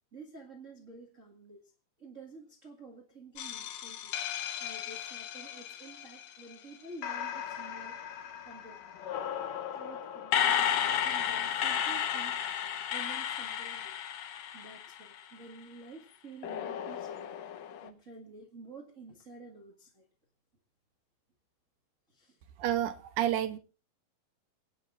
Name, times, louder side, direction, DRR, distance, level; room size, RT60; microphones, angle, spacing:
voice 1, 0.1-1.7 2.0-4.1 4.6-8.8 9.7-12.3 12.9-14.0 14.5-17.5 17.8-20.1 22.1-22.4, right 3 dB, 35° right, 1.4 m, -50 dB
sound 1, 3.4-6.5 7.0-15.4 16.4-17.9, left 9 dB, 70° left, 1.7 m, -34 dB
voice 2, 22.6-23.6, right 12 dB, 70° right, 2.2 m, -30 dB
28.0 x 9.6 x 2.5 m
omnidirectional pair, 4.1 m